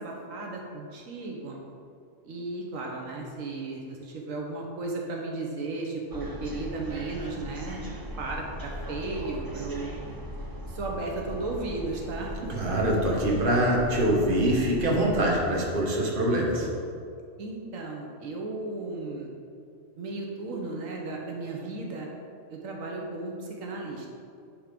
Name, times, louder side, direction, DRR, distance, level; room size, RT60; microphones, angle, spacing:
voice 1, 0.0-1.6 2.2-7.9 8.2-10.1 10.7-12.5 17.4-19.3 20.0-22.1 22.5-24.1, right 2 dB, 80° right, 0 dB, 1.3 m, -35 dB
sound 1, 6.1-15.3, equal, 25° right, 0.4 m, -39 dB
voice 2, 12.5-16.7, right 1 dB, 45° right, -2 dB, 1.4 m, -24 dB
10.0 x 3.6 x 5.1 m, 2.4 s
omnidirectional pair, 1.3 m